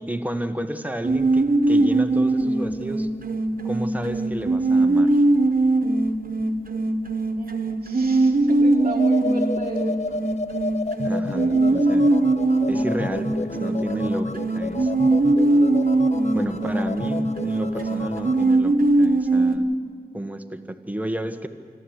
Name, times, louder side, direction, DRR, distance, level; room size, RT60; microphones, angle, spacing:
voice 1, 0.0-3.1 3.6-5.2 11.0-12.3 12.7-14.9 16.3-19.7 20.1-21.5, right 1 dB, 10° right, 7 dB, 1.4 m, -32 dB
sound 1, 1.0-19.6, right 2 dB, 65° right, 1.3 m, -21 dB
voice 2, 7.4-10.2, right 1 dB, 45° right, 0 dB, 1.5 m, -34 dB
sound 2, 8.8-18.6, left 3 dB, 45° left, 0.7 m, -32 dB
26.0 x 13.5 x 8.1 m, 2.1 s
wide cardioid pair, 45°, 16 cm